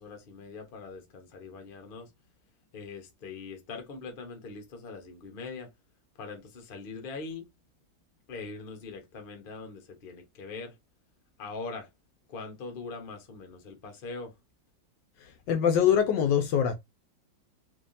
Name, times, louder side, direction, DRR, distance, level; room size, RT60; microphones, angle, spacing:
voice 1, 0.0-2.1 2.7-5.7 6.2-7.5 8.3-10.7 11.4-11.9 12.3-14.3, left 4 dB, 40° left, 0.8 m, -42 dB
voice 2, 15.5-16.7, left 8 dB, 75° left, 1.1 m, -23 dB
3.5 x 3.2 x 2.6 m
omnidirectional pair, 2.1 m